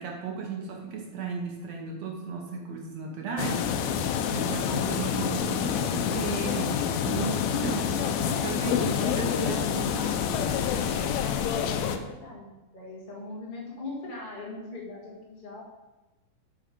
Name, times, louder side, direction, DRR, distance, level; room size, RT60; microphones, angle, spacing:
voice 1, 0.0-10.1, right 5 dB, 70° right, 0 dB, 1.6 m, -35 dB
sound 1, 3.4-12.0, left 8 dB, 80° left, 2.4 m, -27 dB
voice 2, 8.2-10.2 10.9-15.6, left 2 dB, 20° left, -4 dB, 1.3 m, -40 dB
9.2 x 5.1 x 5.2 m, 1.1 s
omnidirectional pair, 4.3 m